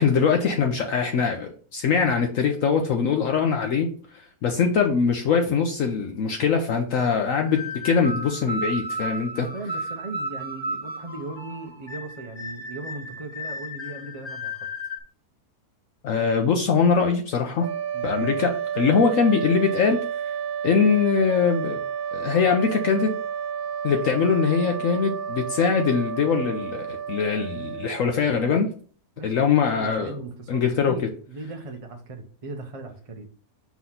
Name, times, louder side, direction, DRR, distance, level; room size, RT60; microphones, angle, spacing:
voice 1, 0.0-9.5 16.0-17.7 18.0-20.0 20.6-21.8 22.1-23.1 23.8-28.7 29.2-30.1 30.5-30.9, left 6 dB, 65° left, 4 dB, 1.0 m, -22 dB
sound 1, 7.4-15.0, equal, 20° left, 0.8 m, -34 dB
voice 2, 9.4-14.7 17.9-18.1 29.2-33.3, right 3 dB, 30° right, 4 dB, 0.7 m, -38 dB
sound 2, 17.6-28.5, right 8 dB, 80° right, 1.2 m, -31 dB
5.8 x 3.1 x 5.6 m, 0.43 s
omnidirectional pair, 1.6 m